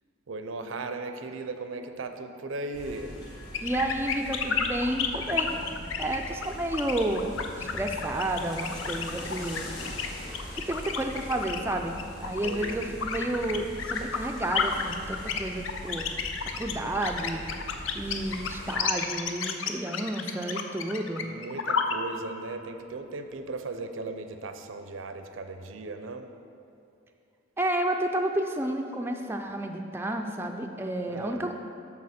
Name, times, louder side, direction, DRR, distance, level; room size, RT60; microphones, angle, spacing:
voice 1, 0.3-3.1 12.4-12.8 21.2-26.3 31.1-31.5, right 3 dB, 80° right, 7 dB, 0.6 m, -37 dB
sound 1, 2.7-18.8, left 1 dB, 55° left, 1.5 m, -42 dB
sound 2, 3.5-21.9, left 6 dB, 75° left, 0.5 m, -31 dB
voice 2, 3.6-5.6 6.0-9.7 10.5-16.1 16.4-17.4 17.9-21.3 27.6-31.5, right 1 dB, 10° right, 3 dB, 0.3 m, -31 dB
12.5 x 4.3 x 4.2 m, 2.5 s
head